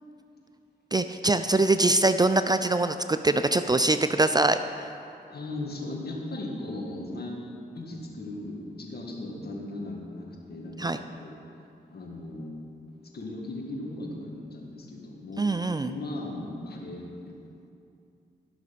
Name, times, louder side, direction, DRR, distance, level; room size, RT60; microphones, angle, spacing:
voice 1, 0.9-4.6 10.8-11.0 15.4-15.9, right 2 dB, 20° right, 10 dB, 0.4 m, -23 dB
voice 2, 5.3-7.4 7.7-11.4 11.9-12.6 13.1-15.4 15.8-17.1, left 2 dB, 60° left, 0 dB, 1.9 m, -37 dB
12.5 x 6.2 x 5.3 m, 2.6 s
cardioid pair, 45°, 18 cm